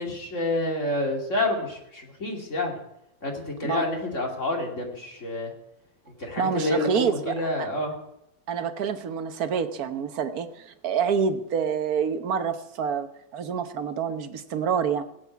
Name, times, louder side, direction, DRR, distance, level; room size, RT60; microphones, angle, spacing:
voice 1, 0.0-2.8 3.2-5.5 6.2-7.9, left 2 dB, 35° left, 1 dB, 3.0 m, -28 dB
voice 2, 6.4-7.5 8.5-15.0, right 6 dB, 55° right, 9 dB, 1.4 m, -27 dB
16.0 x 8.5 x 8.3 m, 0.83 s
omnidirectional pair, 2.1 m